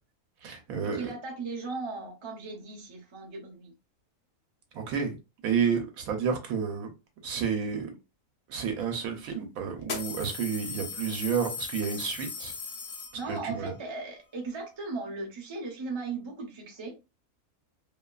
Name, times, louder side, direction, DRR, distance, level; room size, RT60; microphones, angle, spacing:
voice 1, 0.4-1.1 4.7-5.2 5.4-6.9 7.2-7.9 8.5-12.5 13.3-13.7, right 6 dB, 80° right, 1.1 m, -30 dB
voice 2, 0.9-3.7 13.1-17.1, right 3 dB, 35° right, 0.5 m, -37 dB
sound 1, 8.7-8.8 9.8-13.6, left 4 dB, 50° left, 0.7 m, -38 dB
2.7 x 2.3 x 2.3 m
omnidirectional pair, 1.5 m